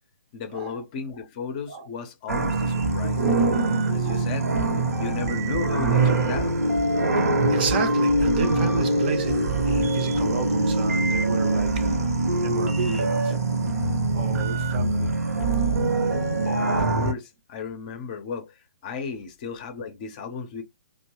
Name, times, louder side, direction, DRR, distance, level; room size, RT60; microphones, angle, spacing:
voice 1, 0.3-3.3 3.9-6.6 16.7-20.6, left 5 dB, 30° left, 0.6 m, -35 dB
sound 1, 2.3-17.1, right 2 dB, 65° right, 0.9 m, -23 dB
voice 2, 7.5-13.3 14.1-15.1, right 4 dB, 35° right, 0.6 m, -31 dB
2.9 x 2.1 x 2.9 m
figure-of-eight pair, 130°, 9 cm